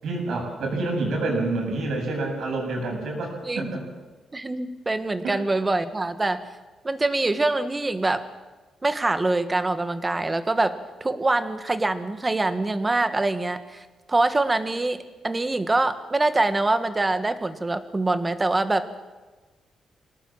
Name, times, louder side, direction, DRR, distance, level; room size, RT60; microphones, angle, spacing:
voice 1, 0.0-3.8 5.2-5.4, right 2 dB, 70° right, 1 dB, 7.9 m, -28 dB
voice 2, 3.4-3.8 4.3-6.4 6.8-8.2 8.8-18.9, right 2 dB, 20° right, 10 dB, 1.5 m, -24 dB
25.0 x 18.5 x 7.5 m, 1.3 s
cardioid pair, 120°, 0 cm